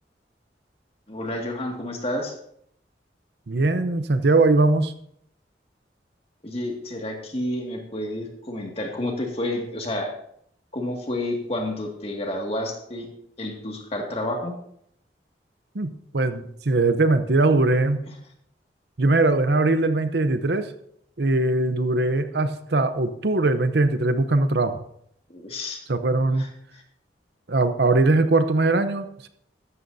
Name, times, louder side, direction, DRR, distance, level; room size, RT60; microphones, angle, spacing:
voice 1, 1.1-2.3 6.4-10.1 10.7-13.1 13.4-14.5 25.3-25.8 26.3-26.5 26.7-26.8, left 1 dB, 35° left, 1 dB, 2.1 m, -30 dB
voice 2, 3.5-4.9 15.7-18.0 19.0-20.7 21.2-24.8 25.9-26.5 27.5-29.3, right 2 dB, 65° right, 10 dB, 0.8 m, -21 dB
14.5 x 12.5 x 2.7 m, 0.70 s
head